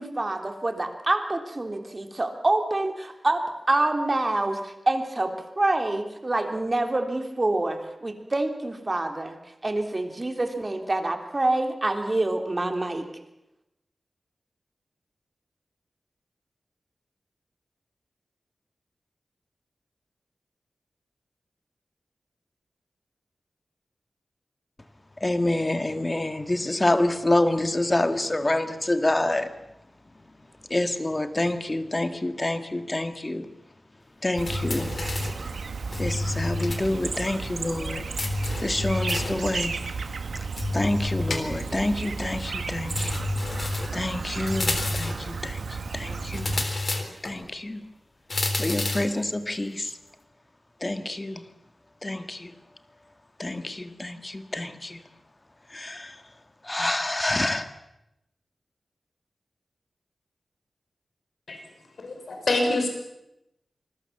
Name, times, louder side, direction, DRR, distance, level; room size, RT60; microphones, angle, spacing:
voice 1, 0.0-9.4 9.6-13.0, right 2 dB, 30° right, 5 dB, 3.3 m, -26 dB
voice 2, 25.2-29.5 30.7-33.5 34.2-34.9 36.0-38.0 38.6-39.8 40.7-43.2 43.9-46.5 47.2-47.8 48.6-49.9 50.8-51.4 52.0-52.5 53.4-55.0 55.7-56.2 56.6-57.7, left 1 dB, 25° left, 9 dB, 2.0 m, -27 dB
Chirp tweet, 34.4-46.7, right 4 dB, 80° right, 1.9 m, -33 dB
sound 1, 34.5-35.4 35.9-36.9 37.1-37.2 38.2-39.4 40.6-41.8 42.9-44.0 44.5-45.3 46.3-47.4 48.3-49.2, left 2 dB, 45° left, 3.6 m, -29 dB
voice 3, 62.0-62.9, left 2 dB, 75° left, 4 dB, 6.1 m, -25 dB
27.0 x 20.5 x 7.3 m, 0.86 s
wide cardioid pair, 85°, 0 cm